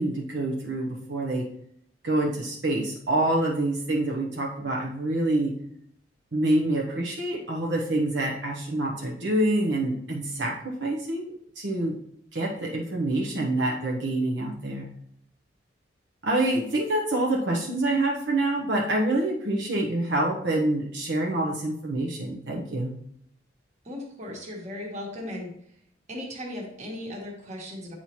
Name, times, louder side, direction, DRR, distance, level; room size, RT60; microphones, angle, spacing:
voice 1, 0.0-1.4 2.0-5.5 6.3-11.9 12.3-14.9 16.2-22.9, right 1 dB, 75° right, -2 dB, 0.9 m, -26 dB
voice 2, 23.8-25.5 26.1-27.9, left 1 dB, 40° right, -1 dB, 1.5 m, -37 dB
8.6 x 4.2 x 3.0 m, 0.70 s
head